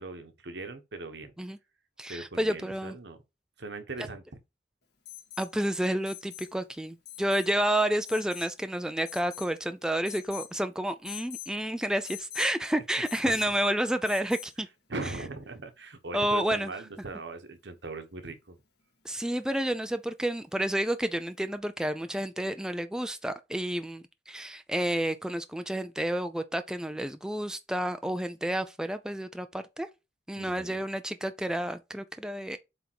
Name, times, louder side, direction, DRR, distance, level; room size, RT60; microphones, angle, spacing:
voice 1, 0.0-1.3 2.1-3.2 3.6-4.2 13.2-13.4 14.9-18.6 19.1-19.3 30.3-30.8, right 2 dB, 70° right, 1.1 m, -40 dB
voice 2, 2.0-3.0 5.4-14.7 16.1-16.7 19.0-29.9 30.3-32.6, right 1 dB, 5° right, 0.4 m, -30 dB
Alarm, 5.0-5.5 6.0-6.5 7.0-7.5 8.0-8.5 9.0-9.6 10.0-10.5 11.0-11.5 12.0-12.5 13.0-13.5 14.0-14.5 16.3-16.4, left 13 dB, 60° left, 2.2 m, -43 dB
7.6 x 3.5 x 4.6 m
head